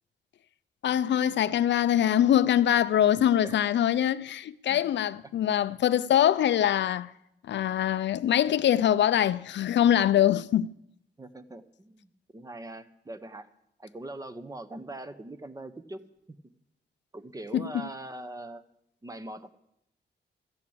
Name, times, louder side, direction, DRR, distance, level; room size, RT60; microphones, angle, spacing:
voice 1, 0.8-7.1 7.4-10.7 17.5-17.7, left 10 dB, 75° left, 0.5 m, -23 dB
voice 2, 11.2-13.5 13.8-16.0 17.1-18.6 19.0-19.5, right 2 dB, 20° right, 0.8 m, -42 dB
13.5 x 8.2 x 8.6 m
wide cardioid pair, 140°, 18 cm